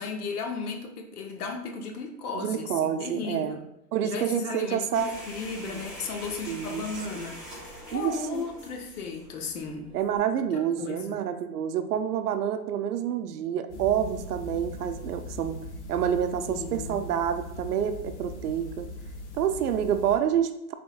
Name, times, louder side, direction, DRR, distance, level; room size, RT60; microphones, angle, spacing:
voice 1, 0.0-3.6 4.0-7.4 7.9-9.9 10.5-11.2 16.5-17.0, left 4 dB, 70° left, 3 dB, 1.0 m, -35 dB
voice 2, 2.3-3.6 3.9-5.1 5.6-5.8 6.5-6.8 7.9-8.4 9.9-15.6 15.9-18.9 19.3-20.7, right 9 dB, 75° right, 9 dB, 0.6 m, -28 dB
sound 1, 4.9-10.2, equal, ahead, 0.9 m, -44 dB
sound 2, 13.7-20.2, left 1 dB, 45° left, 0.9 m, -40 dB
5.0 x 3.6 x 2.3 m, 0.82 s
hypercardioid pair, 165°, 46 cm